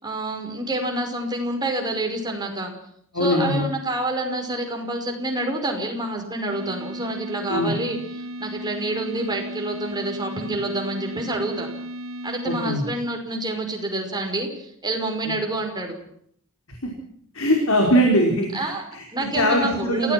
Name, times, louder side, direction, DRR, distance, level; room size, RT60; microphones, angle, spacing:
voice 1, 0.0-2.7 3.2-8.0 8.4-11.7 12.2-15.9 18.5-18.8 19.1-20.1, right 1 dB, 20° right, 3 dB, 5.5 m, -27 dB
voice 2, 3.1-3.6 7.5-7.7 12.5-12.9 15.3-15.4 16.7-16.9 17.3-20.1, equal, 70° left, 1 dB, 5.1 m, -22 dB
sound 1, 6.5-12.7, equal, 70° right, 1.5 m, -35 dB
28.5 x 17.5 x 6.1 m, 0.66 s
head